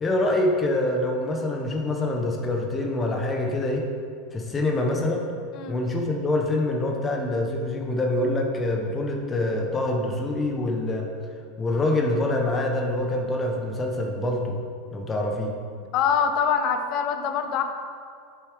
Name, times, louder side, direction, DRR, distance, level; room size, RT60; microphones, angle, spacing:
voice 1, 0.0-3.9 4.3-5.2 5.7-11.1 11.6-14.6 14.9-15.6, left 1 dB, 25° left, 1 dB, 0.9 m, -25 dB
voice 2, 15.9-17.6, left 7 dB, 55° left, 6 dB, 0.6 m, -24 dB
7.6 x 3.4 x 4.7 m, 2.3 s
hypercardioid pair, 85°, 0 cm